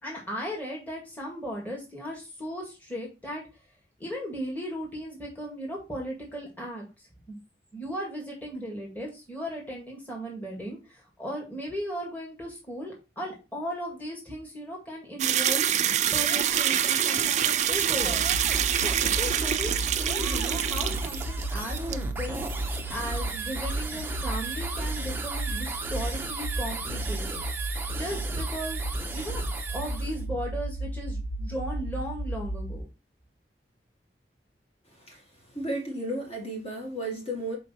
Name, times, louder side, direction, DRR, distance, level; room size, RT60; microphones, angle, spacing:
voice 1, 0.0-3.4 4.0-6.8 7.3-7.4 7.7-18.4 18.7-27.4 28.0-28.8 29.1-32.9, equal, 10° left, 2.0 m, -36 dB
sound 1, 15.2-21.5 21.8-22.0, right 10 dB, 40° right, 0.4 m, -26 dB
sound 2, 15.6-30.2, right 3 dB, 10° right, 0.7 m, -37 dB
sound 3, 18.0-32.8, right 1 dB, 75° left, 0.9 m, -34 dB
voice 2, 35.5-37.6, right 1 dB, 35° left, 2.2 m, -33 dB
6.3 x 4.6 x 4.3 m
head